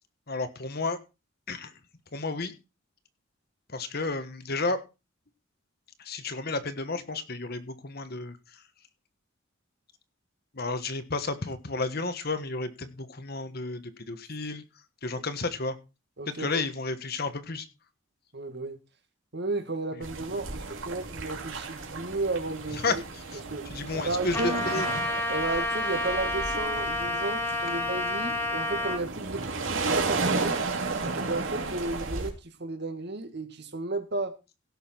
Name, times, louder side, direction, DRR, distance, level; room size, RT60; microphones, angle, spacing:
voice 1, 0.3-1.0 1.5-1.7 2.1-2.5 3.7-4.8 6.0-8.3 10.6-13.8 14.1-14.6 15.0-15.8 16.3-17.6 22.8-22.9 23.7-24.8, left 3 dB, 50° left, 1.4 m, -31 dB
voice 2, 16.2-16.6 18.3-18.8 19.3-23.0 23.3-24.6 25.3-30.6 31.1-34.4, right 2 dB, 55° right, 2.0 m, -33 dB
sound 1, 20.0-32.3, right 3 dB, 80° right, 3.2 m, -33 dB
Trumpet, 24.3-29.0, left 1 dB, 10° left, 2.2 m, -30 dB
16.5 x 6.7 x 4.5 m
head